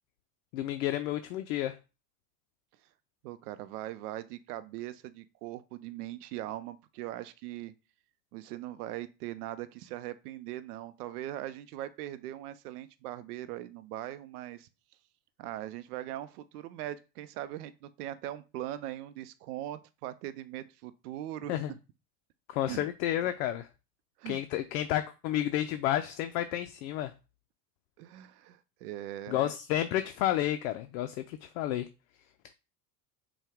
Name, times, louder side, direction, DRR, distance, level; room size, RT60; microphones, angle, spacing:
voice 1, 0.5-1.8 21.5-21.7 22.5-23.7 24.3-27.1 29.3-31.9, left 12 dB, 55° left, 0.5 m, -31 dB
voice 2, 3.2-7.7 8.3-14.7 15.4-21.8 22.7-22.9 24.2-24.4 28.0-29.5, right 13 dB, 65° right, 0.6 m, -40 dB
5.3 x 2.3 x 3.5 m
hypercardioid pair, 85°, 50 cm